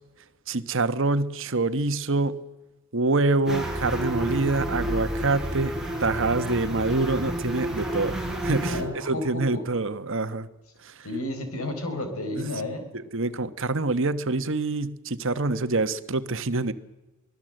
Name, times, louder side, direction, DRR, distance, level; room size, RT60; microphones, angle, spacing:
voice 1, 0.5-2.4 2.9-5.7 6.0-8.1 8.4-8.8 9.1-10.5 10.8-10.9 13.1-16.7, right 3 dB, 60° right, 11 dB, 1.3 m, -25 dB
sound 1, 3.5-8.8, right 1 dB, ahead, 4.5 m, -30 dB
voice 2, 8.7-9.7 11.0-12.9, left 1 dB, 80° left, 7 dB, 4.8 m, -31 dB
24.0 x 16.5 x 7.8 m, 1.1 s
head